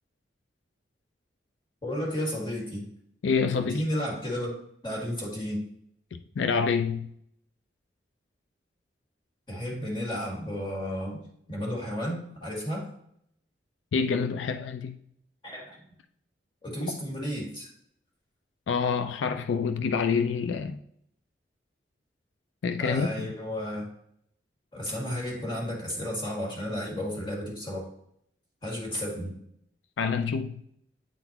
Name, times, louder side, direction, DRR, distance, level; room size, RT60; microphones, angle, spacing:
voice 1, 1.8-2.9 3.7-4.5 4.8-5.6 9.5-11.2 11.5-12.9 15.4-15.8 16.6-17.7 22.8-23.9 24.7-27.9 28.6-29.4, equal, 25° left, 1.8 m, -32 dB
voice 2, 3.2-3.8 6.1-7.1 13.9-15.0 18.7-20.8 22.6-23.3 30.0-30.6, left 5 dB, 85° left, 0.4 m, -27 dB
8.9 x 3.9 x 2.9 m
head